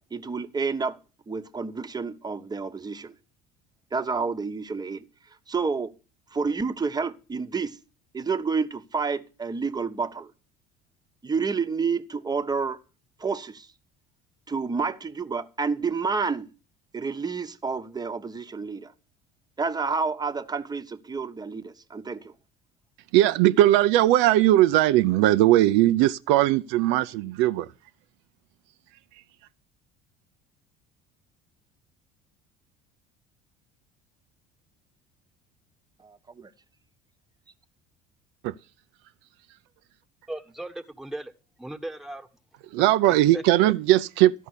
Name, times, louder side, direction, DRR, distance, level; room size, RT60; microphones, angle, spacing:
voice 1, 0.1-1.0 1.3-3.1 3.9-5.1 5.5-5.9 6.3-7.8 8.1-10.3 11.2-12.8 13.2-13.7 14.5-16.5 16.9-18.9 19.6-22.3 36.0-36.5, right 4 dB, 20° right, 1.0 m, -29 dB
voice 2, 23.1-27.7 38.4-38.5 42.7-44.3, right 14 dB, 70° right, 0.5 m, -19 dB
voice 3, 40.3-41.3 41.6-42.3 42.9-43.4, right 1 dB, ahead, 1.3 m, -37 dB
13.0 x 5.4 x 8.0 m
hypercardioid pair, 75°, 20 cm